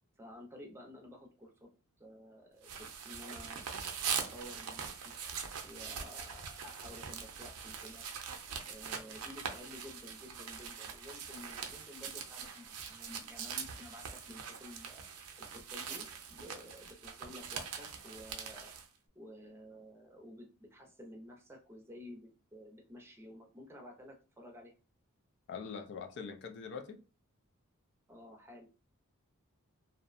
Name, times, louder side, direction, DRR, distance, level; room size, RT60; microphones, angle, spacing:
voice 1, 0.2-1.7 2.0-3.6 4.0-5.1 5.6-8.1 8.7-15.1 15.4-18.7 19.1-24.7 28.1-28.7, left 1 dB, 10° right, 0.5 m, -52 dB
sound 1, 2.6-18.9, right 6 dB, 85° right, 0.5 m, -42 dB
voice 2, 25.5-27.0, left 5 dB, 50° left, 0.3 m, -43 dB
2.7 x 2.1 x 2.5 m
head